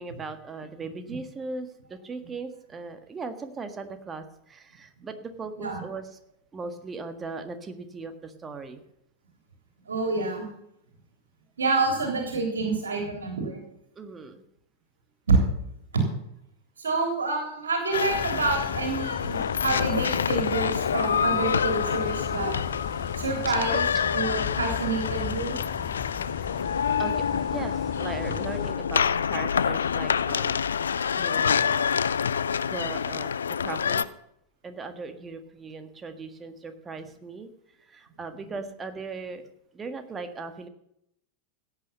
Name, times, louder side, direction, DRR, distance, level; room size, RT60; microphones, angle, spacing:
voice 1, 0.0-6.1 6.5-8.8 13.9-14.4 23.5-24.1 27.0-30.6 31.1-31.9 32.7-34.0 34.6-37.5 37.9-39.5 39.7-40.7, right 4 dB, 20° right, 8 dB, 1.6 m, -38 dB
voice 2, 9.9-10.4 11.6-13.6 15.3-15.4 15.9-16.0 16.8-22.5 23.2-23.8 24.1-25.6, right 3 dB, 70° right, 3 dB, 3.4 m, -27 dB
sound 1, 17.9-34.0, left 7 dB, 70° left, 0.5 m, -27 dB
sound 2, 18.1-28.7, left 10 dB, 30° left, 0.8 m, -37 dB
16.5 x 8.9 x 5.6 m, 0.77 s
figure-of-eight pair, 90°, 0 cm